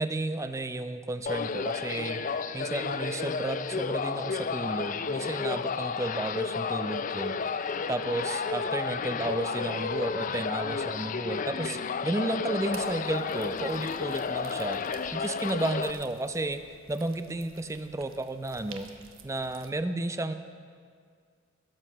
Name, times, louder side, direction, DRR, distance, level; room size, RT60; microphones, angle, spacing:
voice 1, 0.0-2.2 2.5-7.4 7.9-14.8 15.1-16.6 16.9-18.9 19.2-20.3, right 2 dB, 15° right, 10 dB, 0.5 m, -32 dB
sound 1, 1.3-15.9, left 5 dB, 40° left, 0.4 m, -32 dB
sound 2, 12.6-19.7, right 6 dB, 90° right, 1.0 m, -52 dB
17.0 x 7.8 x 6.1 m, 2.1 s
head